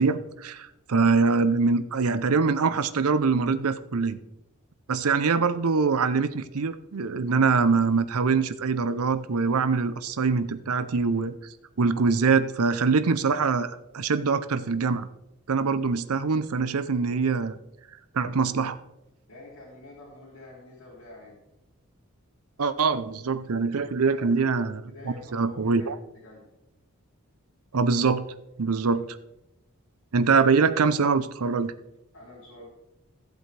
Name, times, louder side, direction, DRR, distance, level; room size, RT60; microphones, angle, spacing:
voice 1, 0.0-4.2 4.9-11.3 11.8-15.1 15.5-17.6 18.1-18.8 22.6-24.8 25.3-26.0 27.7-28.3 28.6-29.2 30.1-31.7, right 4 dB, 85° right, 12 dB, 0.6 m, -24 dB
voice 2, 19.3-21.4 24.1-24.2 24.9-25.9 26.2-26.5 32.1-32.7, left 2 dB, 80° left, -6 dB, 3.0 m, -47 dB
15.5 x 7.8 x 3.4 m, 0.92 s
head